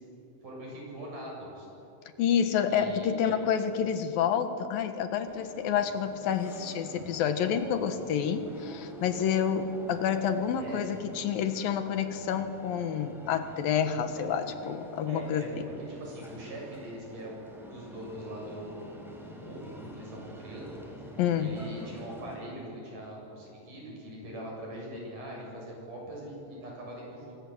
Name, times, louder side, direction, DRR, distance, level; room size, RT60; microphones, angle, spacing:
voice 1, 0.4-1.7 2.7-3.4 10.6-10.8 14.1-14.2 15.1-18.9 19.2-27.3, right 1 dB, 65° right, -2 dB, 9.1 m, -42 dB
voice 2, 2.2-15.7 21.2-21.6, left 8 dB, 80° left, 8 dB, 3.3 m, -29 dB
sound 1, 5.2-22.4, equal, ahead, 5.7 m, -47 dB
28.5 x 24.0 x 8.0 m, 2.9 s
omnidirectional pair, 4.0 m